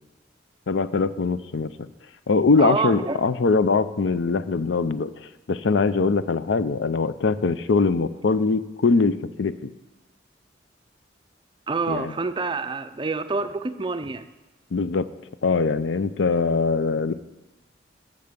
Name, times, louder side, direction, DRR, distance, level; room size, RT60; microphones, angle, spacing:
voice 1, 0.7-1.9 2.3-5.1 5.5-9.7 11.9-12.1 14.7-15.1 15.4-17.1, left 4 dB, 85° left, 13 dB, 0.5 m, -22 dB
voice 2, 2.6-3.2 11.7-14.3, right 4 dB, 25° right, 11 dB, 0.4 m, -27 dB
10.5 x 6.7 x 6.7 m, 1.1 s
head